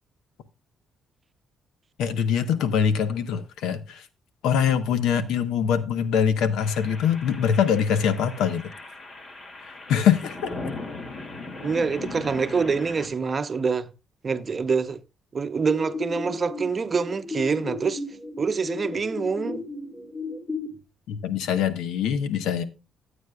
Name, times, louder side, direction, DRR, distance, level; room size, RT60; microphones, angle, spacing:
voice 1, 2.0-4.0 4.4-8.7 9.9-10.5 21.1-22.6, left 8 dB, 90° left, 1.0 m, -23 dB
sound 1, 6.6-13.1, left 3 dB, 45° left, 2.3 m, -38 dB
voice 2, 11.6-13.9 14.2-15.0 15.3-18.0 18.4-19.6, right 5 dB, 40° right, 0.8 m, -26 dB
sound 2, 15.7-20.7, left 3 dB, 5° left, 2.6 m, -34 dB
14.5 x 8.2 x 2.3 m
cardioid pair, 90°, 0 cm